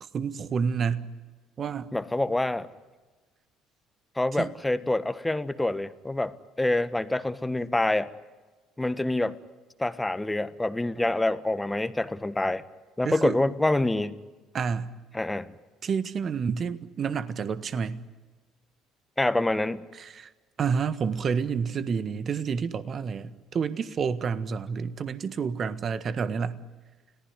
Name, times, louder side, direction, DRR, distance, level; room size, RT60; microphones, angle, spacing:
voice 1, 0.1-1.1 1.6-1.9 4.4-4.5 13.0-13.4 14.5-14.9 15.8-18.0 19.9-20.3 20.6-26.6, right 6 dB, 45° right, 13 dB, 1.6 m, -29 dB
voice 2, 1.9-2.7 4.2-8.1 8.8-9.4 9.8-12.6 13.0-14.2 15.1-15.5 19.2-19.8, left 2 dB, 10° left, 13 dB, 1.5 m, -26 dB
30.0 x 18.5 x 9.9 m, 1.3 s
figure-of-eight pair, 55°, 0 cm